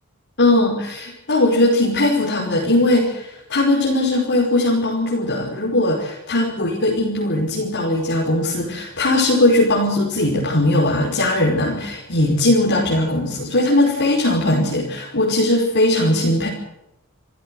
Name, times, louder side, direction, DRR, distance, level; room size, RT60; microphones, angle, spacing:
voice 1, 0.4-16.5, left 1 dB, 55° left, -3 dB, 5.3 m, -19 dB
28.0 x 15.0 x 7.9 m, 0.87 s
head